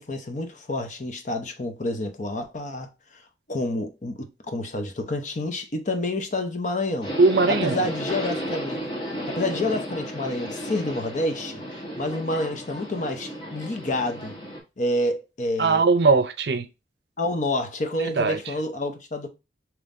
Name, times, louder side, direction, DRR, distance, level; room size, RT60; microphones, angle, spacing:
voice 1, 0.0-2.9 3.5-7.1 7.6-8.8 9.3-11.6 12.0-14.3 14.8-15.8 17.2-19.3, left 1 dB, 45° left, 0.8 m, -28 dB
Subway metro underground, 7.0-14.6, equal, 30° left, 1.3 m, -33 dB
voice 2, 7.2-7.9 15.6-16.7 18.0-18.5, right 4 dB, 65° right, 0.6 m, -20 dB
5.3 x 3.0 x 2.5 m
head